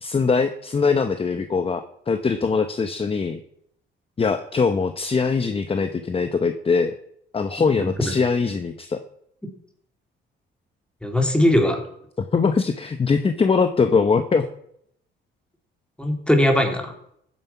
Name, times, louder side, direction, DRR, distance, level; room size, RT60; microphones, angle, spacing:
voice 1, 0.0-3.4 4.2-6.9 7.3-9.0 12.3-14.4, left 5 dB, 30° left, 9 dB, 0.9 m, -22 dB
voice 2, 7.8-8.1 11.0-11.8 16.0-16.9, left 1 dB, 5° left, 3 dB, 3.4 m, -20 dB
15.0 x 9.5 x 5.8 m, 0.72 s
cardioid pair, 90°, 20 cm